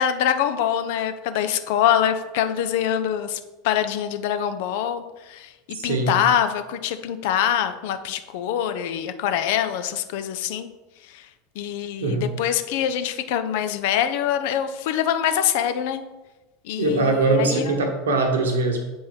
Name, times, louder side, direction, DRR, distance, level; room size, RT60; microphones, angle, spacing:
voice 1, 0.0-5.5 5.8-10.7 11.1-11.3 11.6-16.0 16.6-17.9, left 9 dB, 60° left, 10 dB, 0.5 m, -24 dB
voice 2, 5.7-6.1 12.0-12.2 16.8-18.8, right 3 dB, 70° right, 3 dB, 1.1 m, -22 dB
7.8 x 4.3 x 3.4 m, 1.1 s
figure-of-eight pair, 75°, 0 cm